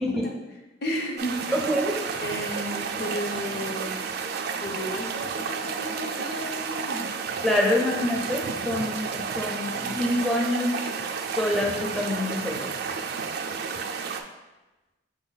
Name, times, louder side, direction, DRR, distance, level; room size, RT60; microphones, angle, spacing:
voice 1, 0.0-0.3 0.9-1.0 1.5-2.0 7.4-10.8 11.4-12.7, left 1 dB, ahead, -1 dB, 0.5 m, -26 dB
voice 2, 0.8-1.7 2.2-4.0 4.6-7.1, equal, 60° left, 1 dB, 0.6 m, -33 dB
sound 1, 1.2-14.2, right 5 dB, 60° right, 0.4 m, -31 dB
5.8 x 2.2 x 3.9 m, 1.1 s
head